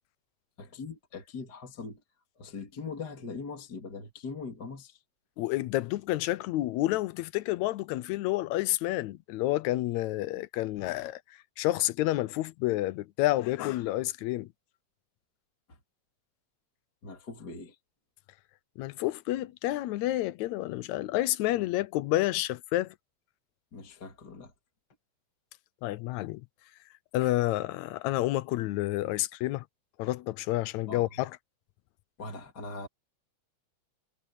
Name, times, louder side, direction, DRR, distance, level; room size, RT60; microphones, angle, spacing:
voice 1, 0.6-2.0 2.4-5.0 17.0-17.8 23.7-24.5 30.9-31.1 32.2-32.9, left 4 dB, 35° left, 2.9 m, -41 dB
voice 2, 5.4-11.2 11.6-14.5 18.8-23.0 25.8-26.4 27.1-29.7 30.0-31.4, left 16 dB, 80° left, 2.0 m, -29 dB
omnidirectional pair, 3.3 m